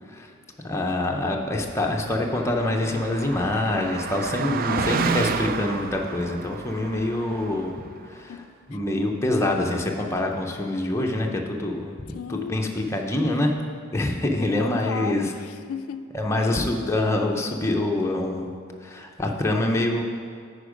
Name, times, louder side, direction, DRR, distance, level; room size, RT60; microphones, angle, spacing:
voice 1, 0.6-7.7 8.1-8.3 8.7-12.0 12.3-13.5 13.9-15.3 16.1-18.5 18.8-20.0, left 1 dB, 15° left, 1 dB, 0.6 m, -25 dB
Car passing by, 1.9-7.9, right 6 dB, 45° right, 0.3 m, -31 dB
voice 2, 8.3-8.8 12.1-12.6 14.6-16.1 16.4-16.5, left 6 dB, 75° left, 10 dB, 0.3 m, -35 dB
9.7 x 4.4 x 5.0 m, 2.1 s
head